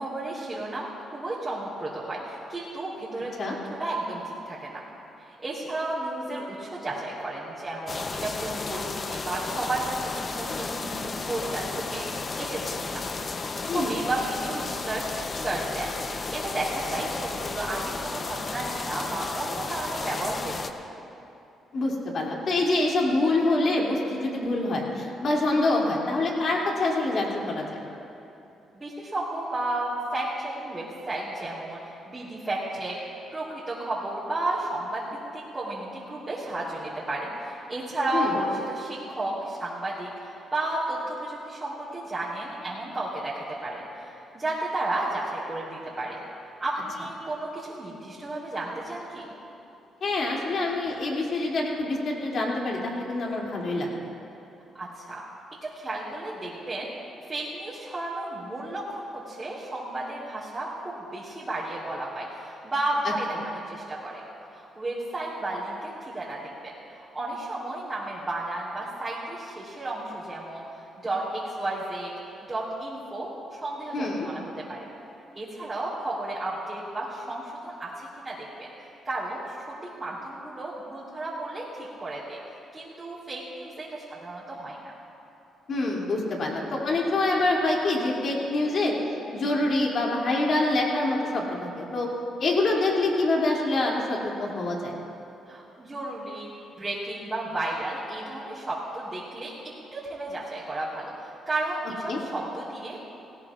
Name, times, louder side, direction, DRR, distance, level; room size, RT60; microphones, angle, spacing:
voice 1, 0.0-4.8 5.2-13.0 13.6-15.0 15.4-15.9 16.3-20.9 25.7-25.8 28.7-31.8 32.0-33.0 33.3-46.2 46.6-49.2 54.7-55.2 55.6-56.9 57.3-64.2 64.5-72.1 72.5-74.9 75.3-78.7 79.0-82.4 82.7-84.9 95.5-96.5 96.8-99.5 99.9-103.1, right 2 dB, 20° right, -9 dB, 3.2 m, -33 dB
sound 1, 7.9-20.7, left 4 dB, 40° left, 0.7 m, -33 dB
voice 2, 21.7-27.8 38.1-38.3 50.0-53.9 73.9-74.3 85.7-88.9 89.3-92.1 92.4-94.9 102.1-102.2, left 2 dB, 55° left, -2 dB, 2.7 m, -26 dB
18.5 x 18.0 x 2.5 m, 2.8 s
cardioid pair, 90°, 0 cm